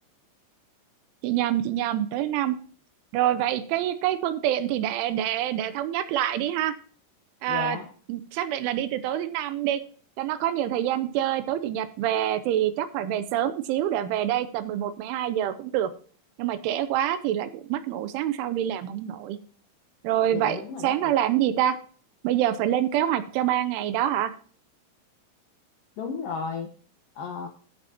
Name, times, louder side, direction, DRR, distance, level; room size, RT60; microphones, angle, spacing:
voice 1, 1.2-2.6 3.1-6.7 7.4-7.8 8.1-9.8 10.2-15.9 16.4-19.4 20.0-21.8 22.2-24.3, right 11 dB, 80° right, 12 dB, 3.1 m, -26 dB
voice 2, 7.5-7.9 20.3-21.1 26.0-26.7 27.2-27.5, left 5 dB, 80° left, 3 dB, 2.0 m, -33 dB
12.5 x 8.8 x 2.8 m, 0.44 s
omnidirectional pair, 5.6 m